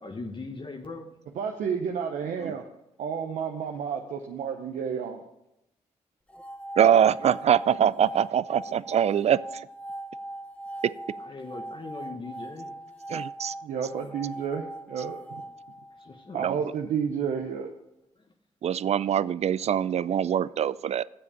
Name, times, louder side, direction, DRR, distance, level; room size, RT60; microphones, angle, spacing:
voice 1, 0.0-1.1 11.2-12.7 16.0-16.5 18.2-18.3, left 3 dB, 40° left, 4 dB, 1.1 m, -40 dB
voice 2, 1.4-2.6 3.0-5.2 13.6-15.4 16.3-17.7, right 7 dB, 85° right, 3 dB, 0.7 m, -31 dB
sound 1, 6.3-16.4, right 1 dB, 10° left, 0.7 m, -40 dB
voice 3, 6.8-9.7 13.1-13.5 16.4-16.6 18.6-21.0, right 9 dB, 55° right, 20 dB, 0.4 m, -23 dB
7.6 x 6.9 x 7.0 m, 0.85 s
supercardioid pair, 50°, 13 cm